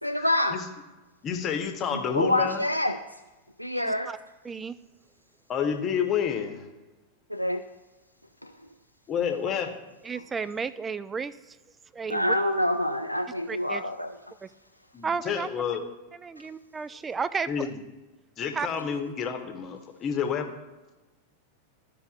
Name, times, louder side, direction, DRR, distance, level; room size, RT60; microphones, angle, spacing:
voice 1, 0.0-0.6 1.9-3.0 3.6-4.1 7.3-7.6 8.4-8.5 12.1-14.1, left 1 dB, 90° left, 5 dB, 0.3 m, -26 dB
voice 2, 1.2-2.6 5.5-6.7 9.1-9.7 14.9-15.8 17.5-17.7 18.4-20.5, left 7 dB, 30° left, 5 dB, 1.1 m, -29 dB
voice 3, 3.7-4.2 4.4-4.8 10.0-11.6 11.9-12.4 13.5-13.8 14.4-14.5 15.0-15.5 16.2-17.7 18.5-19.0, right 5 dB, 15° right, 16 dB, 0.3 m, -33 dB
14.0 x 5.2 x 2.4 m, 1.2 s
figure-of-eight pair, 90°, 0 cm